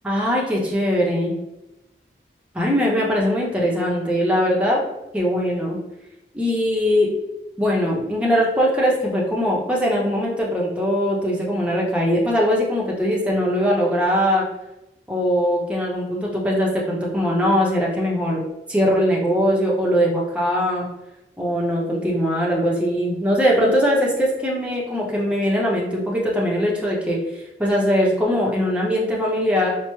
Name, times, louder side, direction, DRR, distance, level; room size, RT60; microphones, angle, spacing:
voice 1, 0.0-1.3 2.5-4.8 5.1-5.8 6.3-7.1 7.6-14.4 15.1-18.4 18.7-20.8 21.4-29.7, equal, 5° right, -4 dB, 0.6 m, -21 dB
4.5 x 2.1 x 3.0 m, 0.94 s
head